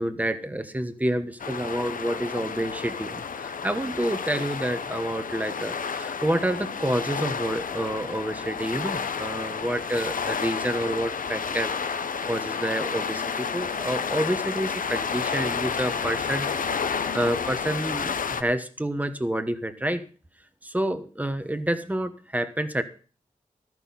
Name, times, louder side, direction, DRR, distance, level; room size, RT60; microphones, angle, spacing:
voice 1, 0.0-11.7 12.2-16.5 17.1-20.0 20.6-22.8, right 1 dB, 10° right, 10 dB, 1.2 m, -28 dB
sound 1, 1.4-18.4, left 6 dB, 80° left, 0.8 m, -31 dB
13.5 x 6.1 x 7.2 m, 0.39 s
wide cardioid pair, 105°, 14 cm